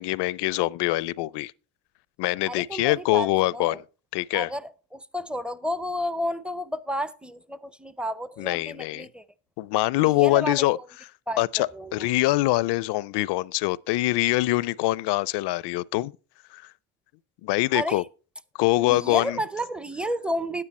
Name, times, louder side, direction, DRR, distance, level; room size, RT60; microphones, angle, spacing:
voice 1, 0.0-1.5 2.2-3.8 4.1-4.5 8.4-9.1 9.6-10.8 11.4-16.1 16.5-16.6 17.4-18.0 18.6-19.4, left 18 dB, 55° left, 0.5 m, -24 dB
voice 2, 2.5-3.8 4.3-9.2 10.0-10.8 11.3-12.1 17.7-18.0 18.8-20.6, equal, ahead, 0.5 m, -31 dB
9.7 x 9.6 x 4.2 m
supercardioid pair, 85°, 49 cm